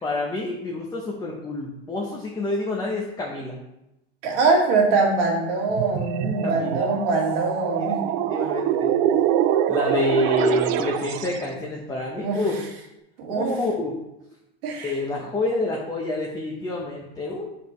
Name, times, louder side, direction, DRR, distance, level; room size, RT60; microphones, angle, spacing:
voice 1, 0.0-3.6 6.4-6.9 7.7-7.8 8.3-9.0 9.7-12.6 13.3-14.0 14.8-17.5, left 2 dB, 15° left, -3 dB, 0.8 m, -28 dB
voice 2, 4.2-8.1 12.2-12.4 13.2-13.5 14.6-15.0, right 3 dB, 75° right, -1 dB, 2.0 m, -23 dB
sound 1, 5.7-11.5, right 11 dB, 55° right, 0.5 m, -24 dB
6.2 x 5.2 x 3.2 m, 0.89 s
supercardioid pair, 130°, 30 cm